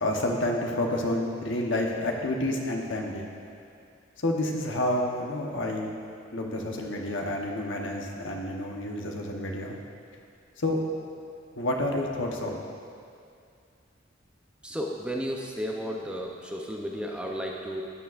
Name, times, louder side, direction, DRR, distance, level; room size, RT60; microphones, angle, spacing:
voice 1, 0.0-3.3 4.2-6.0 6.3-9.8 10.6-10.8 11.5-12.6, left 1 dB, 70° left, 0 dB, 1.1 m, -29 dB
voice 2, 14.6-17.8, equal, 5° right, -1 dB, 0.6 m, -33 dB
12.5 x 9.8 x 2.5 m, 2.4 s
head